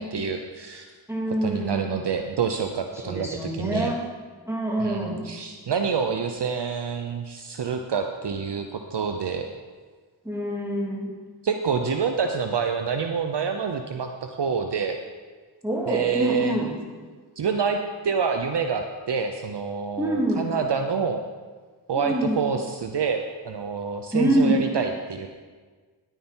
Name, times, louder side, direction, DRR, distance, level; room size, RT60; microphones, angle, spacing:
voice 1, 0.0-0.9 1.4-3.9 4.8-8.6 8.9-9.5 11.4-15.0 15.9-16.5 17.4-17.8 18.0-21.2 21.9-23.2 23.4-25.3, right 6 dB, 55° right, 5 dB, 0.8 m, -27 dB
voice 2, 1.1-2.0 3.0-4.0 4.5-5.3 10.2-11.2 15.6-16.7 20.0-20.6 21.9-22.5 24.1-24.6, right 1 dB, 5° right, -3 dB, 2.9 m, -26 dB
11.0 x 9.1 x 4.4 m, 1.5 s
cardioid pair, 60°, 49 cm